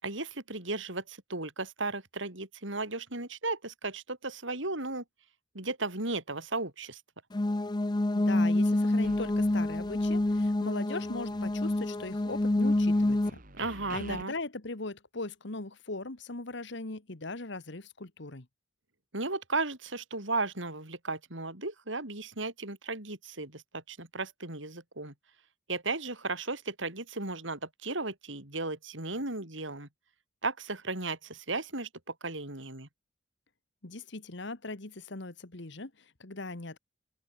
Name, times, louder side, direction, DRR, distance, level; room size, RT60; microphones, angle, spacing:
voice 1, 0.0-5.0 5.5-7.0 13.5-14.3 19.1-25.1 25.7-29.9 30.4-32.9, right 3 dB, 70° right, 5.1 m, -35 dB
sound 1, 7.3-13.3, left 1 dB, 20° left, 0.6 m, -27 dB
voice 2, 8.1-13.4 13.9-18.5 33.8-36.8, left 2 dB, 60° left, 1.6 m, -39 dB
sound 2, 9.0-10.7 11.0-14.2, right 1 dB, 45° right, 6.9 m, -51 dB
open air
head